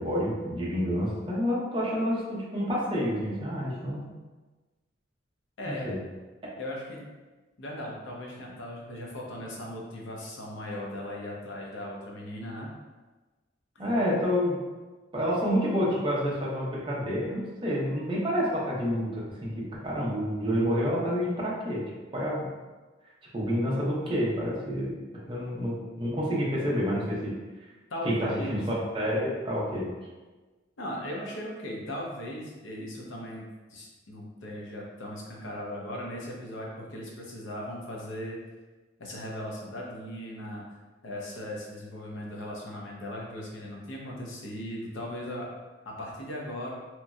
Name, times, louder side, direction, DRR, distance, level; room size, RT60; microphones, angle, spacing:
voice 1, 0.0-4.1 5.6-6.0 13.8-14.6 15.1-21.8 22.1-22.5 23.3-24.9 25.2-27.4 28.0-29.9, equal, 25° right, -5 dB, 0.7 m, -28 dB
voice 2, 6.6-7.1 7.6-12.7 27.9-28.6 30.8-33.4 33.7-38.4 39.0-40.6 41.0-45.5 45.9-46.7, left 1 dB, 85° left, -2 dB, 0.7 m, -38 dB
2.9 x 2.6 x 2.3 m, 1.2 s
head